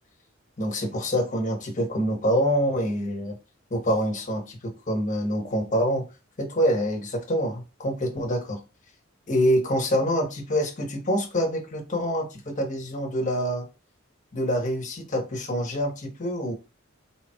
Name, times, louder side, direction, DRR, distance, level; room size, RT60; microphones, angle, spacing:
voice 1, 0.6-3.4 3.7-6.1 6.4-8.6 9.3-13.6 14.3-16.5, equal, 40° left, 1.1 m, -26 dB
4.3 x 3.4 x 2.3 m
head